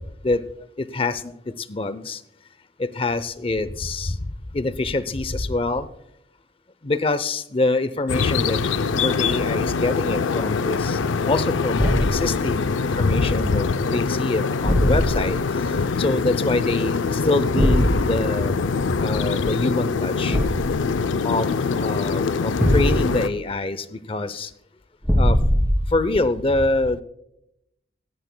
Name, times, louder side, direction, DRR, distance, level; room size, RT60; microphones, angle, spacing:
voice 1, 0.9-1.3 1.7-2.2 3.0-4.1 4.5-5.9 6.8-8.6 8.9-11.0 11.3-15.4 16.0-20.4 21.2-21.5 21.8-24.5 25.2-25.4 25.9-27.0, left 2 dB, 30° left, 15 dB, 0.6 m, -25 dB
sound 1, 8.1-23.3, left 4 dB, 75° left, 0.5 m, -24 dB
Thump thud, 11.7-12.3 14.6-15.3 17.6-18.0 20.3-20.8 22.6-23.2 25.0-26.0, equal, 10° right, 2.7 m, -20 dB
16.5 x 15.0 x 2.2 m, 0.78 s
head